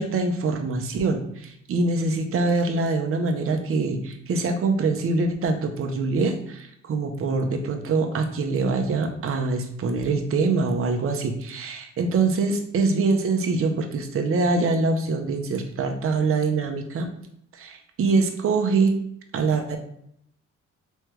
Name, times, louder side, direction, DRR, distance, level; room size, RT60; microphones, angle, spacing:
voice 1, 0.0-17.1 17.5-19.0 19.3-19.8, right 3 dB, 45° right, 4 dB, 0.7 m, -24 dB
3.6 x 3.2 x 3.1 m, 0.73 s
cardioid pair, 90°, 30 cm